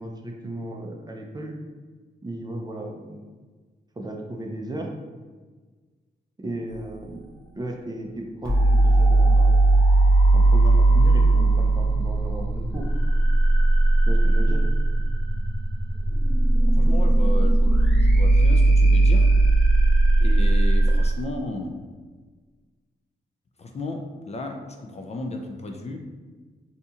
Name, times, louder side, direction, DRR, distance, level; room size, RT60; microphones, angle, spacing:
voice 1, 0.0-1.5 2.2-3.2 4.0-4.9 6.4-7.2 7.5-9.7 10.3-12.8 14.1-14.6, right 1 dB, 20° right, 1 dB, 0.5 m, -35 dB
sound 1, 8.4-21.1, right 2 dB, 5° left, 1.0 m, -18 dB
voice 2, 16.7-19.3 20.2-21.8 23.6-26.0, left 2 dB, 35° left, 3 dB, 0.4 m, -34 dB
4.0 x 2.8 x 2.4 m, 1.4 s
cardioid pair, 80°, 18 cm